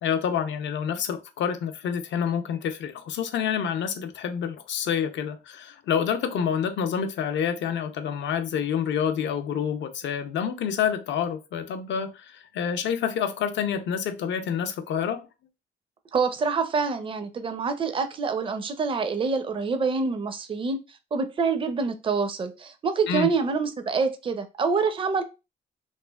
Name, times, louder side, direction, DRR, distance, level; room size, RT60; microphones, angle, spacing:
voice 1, 0.0-15.3 23.1-23.3, left 7 dB, 65° left, 0.5 m, -28 dB
voice 2, 16.1-20.8 21.1-25.2, right 4 dB, 25° right, 0.4 m, -26 dB
3.0 x 2.4 x 2.2 m
cardioid pair, 90°, 20 cm